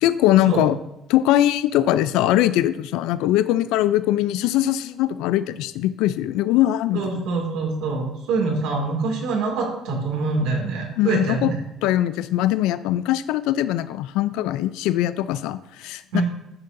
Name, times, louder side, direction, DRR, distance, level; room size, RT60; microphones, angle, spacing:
voice 1, 0.0-0.8 1.1-7.3 11.0-11.5 11.8-16.2, left 13 dB, 80° left, 14 dB, 0.3 m, -21 dB
voice 2, 6.9-11.6 16.1-16.2, right 3 dB, 75° right, 1 dB, 2.3 m, -25 dB
10.5 x 6.6 x 2.6 m, 0.87 s
cardioid pair, 155°, 0 cm